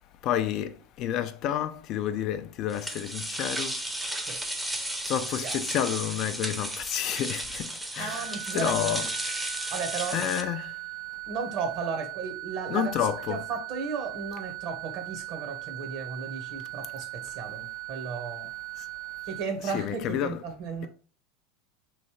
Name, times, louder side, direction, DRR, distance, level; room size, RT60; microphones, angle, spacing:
voice 1, 0.2-3.8 5.1-9.1 10.1-10.7 12.7-13.4 19.6-20.4, left 10 dB, 50° left, 0.3 m, -30 dB
sound 1, 2.7-10.4, right 1 dB, 10° right, 0.6 m, -34 dB
voice 2, 8.0-9.0 9.7-10.3 11.3-12.9 13.3-18.5 19.3-20.9, right 5 dB, 55° right, 1.0 m, -34 dB
sound 2, 8.0-19.4, right 21 dB, 85° right, 0.6 m, -39 dB
3.2 x 2.7 x 3.0 m
hypercardioid pair, 85°, 0 cm